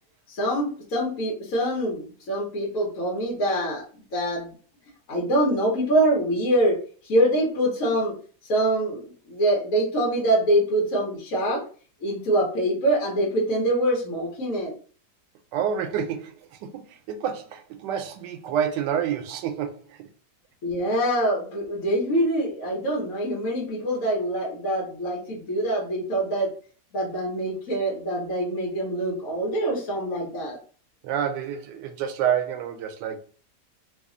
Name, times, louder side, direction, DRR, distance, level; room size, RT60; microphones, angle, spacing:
voice 1, 0.3-4.5 5.1-6.8 7.0-8.1 8.4-11.6 12.0-14.7 20.6-26.5 26.9-30.6, right 1 dB, 55° left, 1.3 m, -24 dB
voice 2, 15.5-20.1 31.0-33.2, right 8 dB, 85° right, 1.2 m, -28 dB
3.2 x 2.4 x 3.6 m
omnidirectional pair, 1.8 m